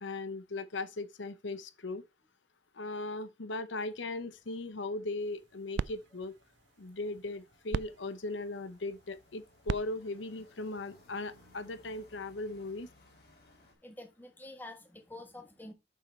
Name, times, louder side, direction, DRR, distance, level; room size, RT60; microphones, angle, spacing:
voice 1, 0.0-2.0 2.7-6.3 6.8-12.9, left 2 dB, 85° left, 0.8 m, -38 dB
sound 1, 3.9-13.7, left 2 dB, 55° left, 2.9 m, -64 dB
sound 2, 5.2-11.6, right 6 dB, 75° right, 0.3 m, -42 dB
voice 2, 13.8-15.7, left 1 dB, 10° left, 1.3 m, -48 dB
6.9 x 5.7 x 4.4 m
head